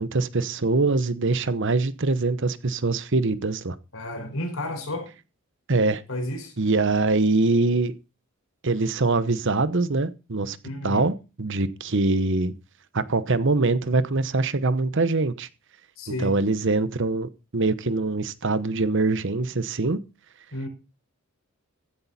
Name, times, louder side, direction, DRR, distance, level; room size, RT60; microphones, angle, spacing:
voice 1, 0.0-3.8 5.7-6.0 6.6-7.9 8.6-10.6 10.8-12.5 12.9-15.5 16.2-20.0, right 3 dB, 55° right, 1.0 m, -23 dB
voice 2, 3.9-5.1 6.1-6.5 10.6-11.1 16.0-16.4 20.5-20.7, left 1 dB, 65° left, 5.1 m, -31 dB
15.0 x 10.0 x 4.2 m
head